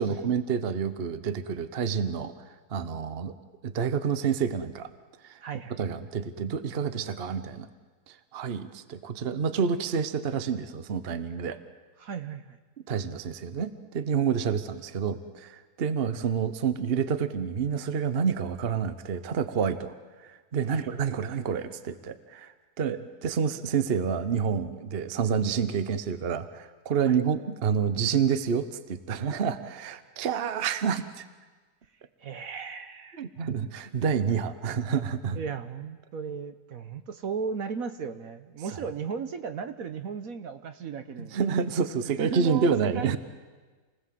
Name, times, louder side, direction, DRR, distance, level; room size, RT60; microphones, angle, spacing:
voice 1, 0.0-2.3 2.7-3.3 3.6-4.9 5.2-5.4 5.8-7.7 8.1-11.6 12.9-19.9 20.2-31.3 33.2-35.4 41.2-43.2, right 6 dB, 45° right, 12 dB, 1.1 m, -28 dB
voice 2, 5.4-5.9 12.0-12.6 20.7-20.9 27.0-27.2 32.2-33.2 35.3-41.4 42.2-43.2, right 6 dB, 65° right, 9 dB, 1.4 m, -36 dB
28.5 x 19.5 x 7.6 m, 1.4 s
omnidirectional pair, 1.7 m